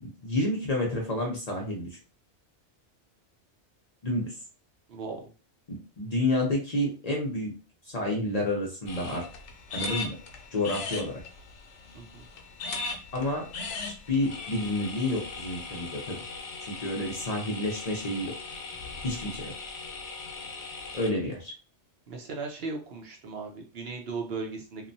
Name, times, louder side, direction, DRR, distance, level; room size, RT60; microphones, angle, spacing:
voice 1, 0.0-2.0 4.0-4.3 5.7-7.5 7.8-9.2 9.7-10.2 10.5-11.1 13.1-13.8 14.1-16.2 16.6-18.3 19.0-19.5 20.9-21.5, left 1 dB, 45° left, -1 dB, 0.6 m, -29 dB
voice 2, 4.9-5.3 11.9-12.2 22.1-24.9, right 4 dB, 65° right, 1 dB, 0.8 m, -37 dB
sound 1, 8.9-21.1, left 3 dB, 85° left, 0.9 m, -39 dB
2.8 x 2.1 x 2.6 m, 0.34 s
omnidirectional pair, 1.2 m